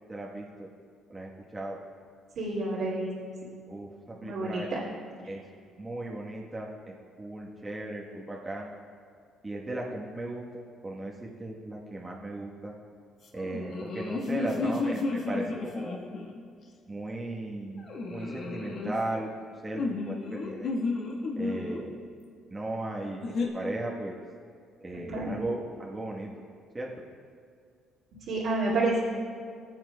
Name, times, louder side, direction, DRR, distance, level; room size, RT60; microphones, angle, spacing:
voice 1, 0.1-0.7 1.1-1.8 3.7-4.7 5.3-5.4 5.8-8.8 9.4-12.7 13.3-16.0 16.9-19.4 19.6-20.8 21.4-22.0 22.5-24.2 24.8-26.3 26.7-26.9, right 2 dB, 20° right, -3 dB, 1.1 m, -37 dB
voice 2, 2.4-3.1 4.2-4.6 25.1-25.4 28.3-29.0, right 2 dB, 70° right, -10 dB, 2.0 m, -29 dB
sound 1, 13.4-16.4 17.9-18.9 19.7-21.8 23.2-23.5, left 3 dB, 60° left, 1.3 m, -32 dB
17.0 x 7.4 x 2.2 m, 2.2 s
supercardioid pair, 75°, 0 cm